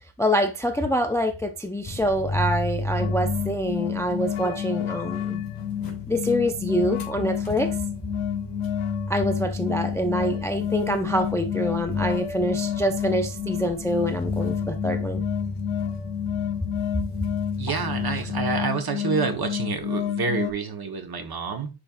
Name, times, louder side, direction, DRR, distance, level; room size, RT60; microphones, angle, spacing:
voice 1, 0.2-5.4 6.1-7.7 9.1-15.2 18.2-18.3, equal, 5° left, 0.5 m, -26 dB
sound 1, 1.8-18.7, left 2 dB, 45° left, 2.7 m, -34 dB
sound 2, 3.0-20.5, left 9 dB, 80° left, 0.9 m, -30 dB
voice 2, 17.6-21.7, right 5 dB, 45° right, 1.3 m, -28 dB
9.9 x 4.5 x 2.5 m
wide cardioid pair, 150°, 49 cm